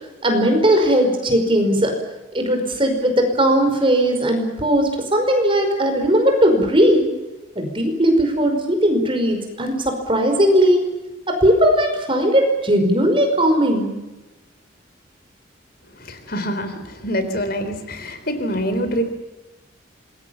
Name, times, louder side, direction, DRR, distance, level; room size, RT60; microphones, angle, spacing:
voice 1, 0.2-2.0 2.3-7.0 7.6-10.8 11.3-14.0, equal, 25° right, 5 dB, 5.3 m, -18 dB
voice 2, 16.0-19.0, equal, 50° left, 8 dB, 3.8 m, -25 dB
27.0 x 21.5 x 7.3 m, 1.1 s
head